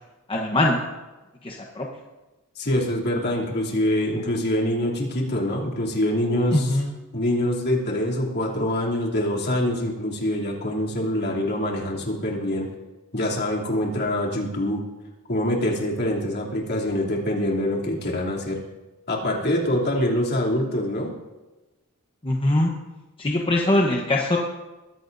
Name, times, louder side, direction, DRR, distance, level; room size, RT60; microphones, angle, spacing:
voice 1, 0.3-0.8 1.4-1.9 6.5-6.9 22.2-22.7 23.2-24.4, left 1 dB, 25° left, 0 dB, 1.0 m, -22 dB
voice 2, 2.6-6.8 7.1-12.7 13.1-14.8 15.3-18.6 19.1-21.1, left 1 dB, 50° left, -3 dB, 3.0 m, -25 dB
21.5 x 15.0 x 2.7 m, 1.1 s
head